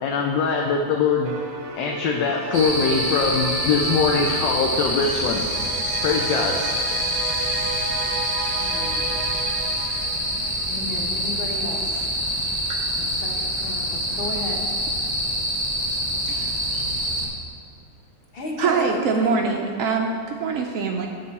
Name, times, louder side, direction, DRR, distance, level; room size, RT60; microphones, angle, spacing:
voice 1, 0.0-1.4 1.8-5.4 6.0-6.6, left 5 dB, 85° left, 1 dB, 1.3 m, -22 dB
sound 1, 1.2-11.0, right 4 dB, 65° right, 1.0 m, -33 dB
sound 2, 2.5-17.3, equal, 25° right, 0.6 m, -26 dB
sound 3, 5.0-10.2, left 1 dB, 15° left, 1.5 m, -42 dB
voice 2, 8.4-9.0 10.7-12.0 13.0-14.6 18.3-19.5, left 1 dB, 40° left, -1 dB, 1.0 m, -33 dB
voice 3, 18.6-21.1, right 5 dB, 85° right, 2 dB, 0.7 m, -23 dB
7.3 x 6.6 x 4.1 m, 2.2 s
omnidirectional pair, 2.0 m